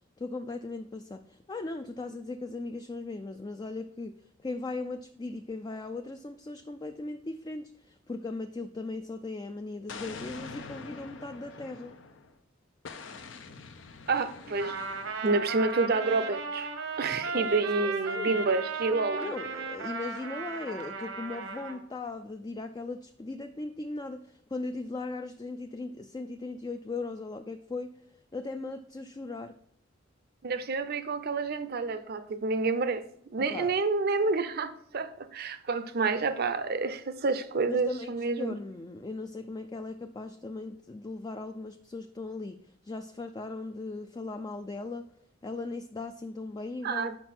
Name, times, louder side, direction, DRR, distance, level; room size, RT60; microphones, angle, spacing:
voice 1, 0.2-12.0 17.3-17.5 17.8-18.4 19.2-28.0 28.3-29.5 33.4-33.8 37.7-45.1 45.4-47.2, left 3 dB, 20° left, 0.4 m, -38 dB
Explosion, 9.9-12.3 12.8-15.4, left 4 dB, 75° left, 0.7 m, -45 dB
voice 2, 14.1-14.8 15.2-16.7 17.0-19.3 30.4-38.6 46.8-47.2, right 3 dB, 55° right, 0.6 m, -29 dB
Trumpet, 14.6-21.8, right 4 dB, 80° right, 1.1 m, -36 dB
6.0 x 5.4 x 5.9 m
head